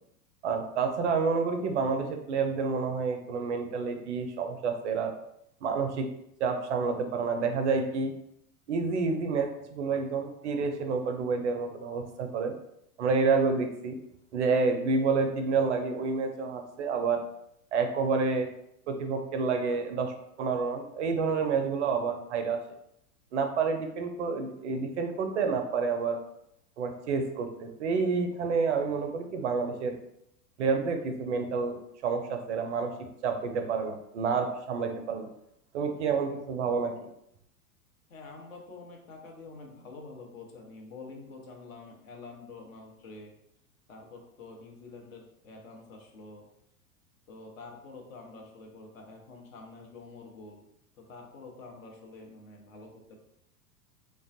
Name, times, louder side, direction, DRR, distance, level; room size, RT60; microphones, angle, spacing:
voice 1, 0.4-5.1 5.6-6.1 6.4-8.1 8.7-12.5 13.0-14.0 14.3-17.2 17.7-18.5 18.9-20.1 20.4-22.6 23.3-26.2 26.8-29.9 30.6-31.8 32.0-32.9 33.2-35.3 35.7-36.9, right 4 dB, 50° right, 5 dB, 0.4 m, -29 dB
voice 2, 38.1-43.3 43.9-46.5 47.3-50.7 50.9-53.2, left 3 dB, 60° left, 0 dB, 0.9 m, -47 dB
3.3 x 2.3 x 2.5 m, 0.76 s
figure-of-eight pair, 95°, 46 cm